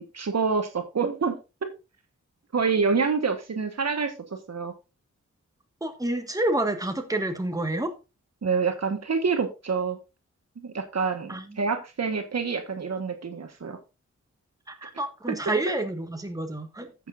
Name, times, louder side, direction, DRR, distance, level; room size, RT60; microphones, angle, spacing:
voice 1, 0.0-1.7 2.5-4.1 4.5-4.7 8.4-10.0 10.6-13.8 15.4-15.5, right 5 dB, 60° right, 1.5 m, -27 dB
voice 2, 5.8-7.9 11.3-11.6 14.7-16.9, right 1 dB, 10° right, 1.7 m, -29 dB
14.5 x 6.9 x 2.6 m
cardioid pair, 70°, 30 cm